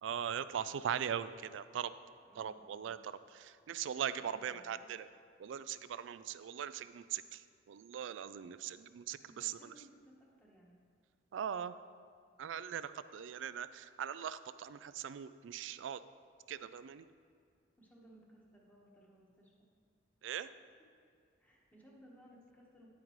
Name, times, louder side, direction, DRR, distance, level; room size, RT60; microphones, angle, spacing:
voice 1, 0.0-1.9 2.4-5.1 5.4-9.7 11.3-11.7 12.4-16.0 16.5-17.1 20.2-20.5, right 8 dB, 85° right, 14 dB, 0.3 m, -40 dB
voice 2, 2.2-2.8 4.2-4.7 9.2-10.8 17.8-19.5 21.4-22.9, equal, 10° left, -3 dB, 1.3 m, -61 dB
9.6 x 8.7 x 3.1 m, 2.2 s
head